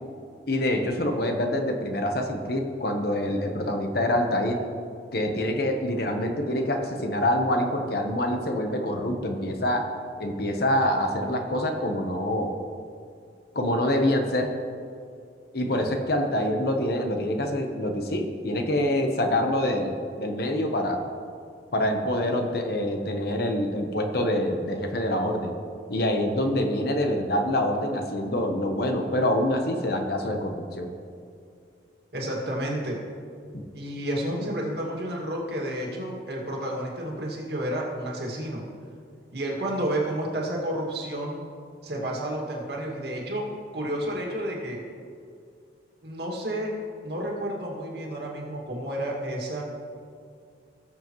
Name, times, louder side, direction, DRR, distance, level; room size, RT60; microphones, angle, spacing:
voice 1, 0.5-4.6 5.1-9.8 10.2-12.5 13.5-14.5 15.5-21.0 21.7-25.5 25.9-30.9 33.5-33.6, left 1 dB, 55° left, 4 dB, 1.0 m, -26 dB
voice 2, 32.1-33.0 33.7-38.6 39.3-41.4 41.8-43.5 43.7-44.8 46.0-46.8 47.0-49.6, right 1 dB, 55° right, -2 dB, 2.1 m, -31 dB
19.0 x 7.3 x 3.1 m, 2.3 s
head